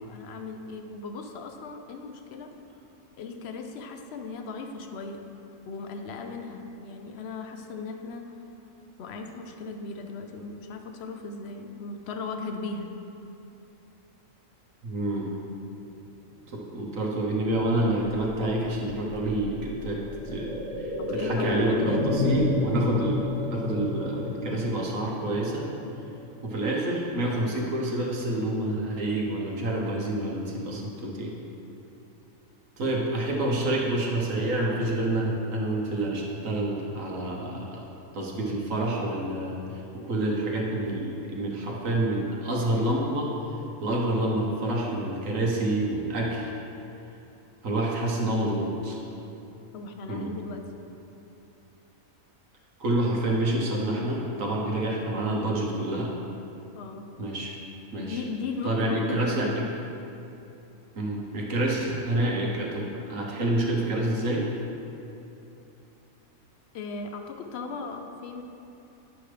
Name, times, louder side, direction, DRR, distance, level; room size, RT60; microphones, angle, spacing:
voice 1, 0.0-2.6 3.2-5.2 5.6-8.2 9.0-12.9 21.0-22.0 49.7-50.6 56.7-57.1 58.0-59.5 66.7-68.4, left 3 dB, 60° left, 5 dB, 0.8 m, -37 dB
voice 2, 14.8-15.3 16.5-25.7 26.4-31.3 32.8-37.8 38.1-43.3 43.8-46.5 47.6-49.0 50.1-50.3 52.8-56.1 57.2-57.5 57.9-58.2 58.6-59.5 60.9-64.5, right 1 dB, 70° right, -3 dB, 1.4 m, -28 dB
sound 1, 18.2-27.1 27.4-27.5, left 2 dB, 30° left, 1.3 m, -31 dB
9.7 x 6.0 x 3.3 m, 2.9 s
omnidirectional pair, 1.4 m